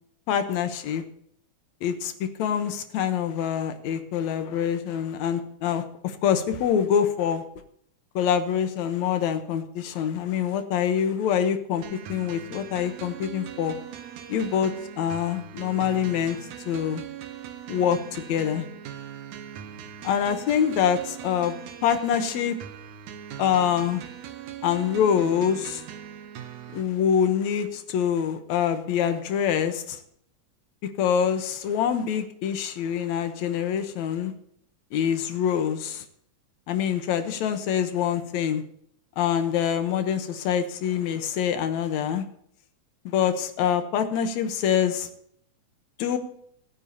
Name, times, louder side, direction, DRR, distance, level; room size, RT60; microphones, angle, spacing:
voice 1, 0.3-1.0 1.8-7.4 8.2-13.8 14.3-16.4 16.7-17.0 17.7-18.7 20.0-21.5 21.8-22.6 23.4-24.0 24.6-25.8 26.7-30.0 31.0-34.3 34.9-36.0 36.7-38.6 39.2-42.3 43.1-45.1 46.0-46.2, left 8 dB, 75° left, 8 dB, 2.3 m, -25 dB
sound 1, 11.8-26.8, right 9 dB, 80° right, 2.3 m, -40 dB
26.5 x 9.3 x 2.8 m, 0.69 s
omnidirectional pair, 3.4 m